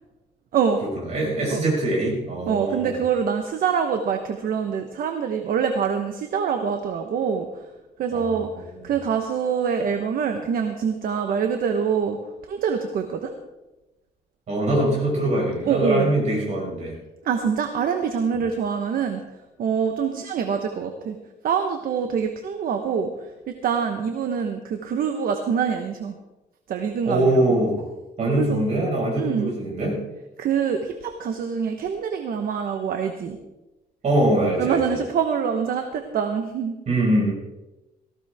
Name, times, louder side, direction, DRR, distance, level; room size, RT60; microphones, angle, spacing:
voice 1, 0.8-3.0 8.1-8.4 14.5-16.9 27.0-27.8 28.2-30.0 34.0-35.0 36.9-37.3, right 1 dB, 45° right, -3 dB, 5.6 m, -23 dB
voice 2, 2.5-7.6 8.0-12.2 12.5-13.3 15.6-16.1 17.2-19.2 19.6-21.2 21.4-26.2 26.7-27.5 28.4-28.6 29.2-29.5 30.4-33.4 34.6-36.7, right 7 dB, 60° right, 5 dB, 1.1 m, -25 dB
18.0 x 15.0 x 3.6 m, 1.0 s
cardioid pair, 165°, 17 cm